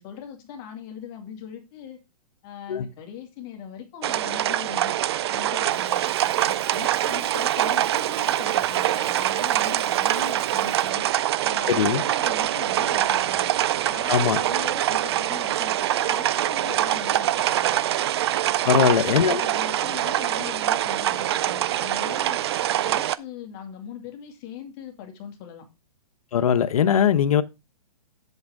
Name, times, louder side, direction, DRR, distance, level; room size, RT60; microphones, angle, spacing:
voice 1, 0.0-2.0 2.4-5.0 5.3-11.1 11.4-13.5 13.9-18.0 18.6-22.4 22.7-25.7, left 8 dB, 30° left, 2.2 m, -40 dB
sound 1, 4.0-23.1, right 13 dB, 45° right, 0.4 m, -24 dB
Camera, 5.7-10.9, right 6 dB, 75° right, 1.9 m, -44 dB
voice 2, 11.7-12.0 14.1-14.4 18.7-19.4 26.3-27.4, left 8 dB, 70° left, 0.9 m, -20 dB
8.0 x 7.2 x 3.6 m
hypercardioid pair, 150°, 19 cm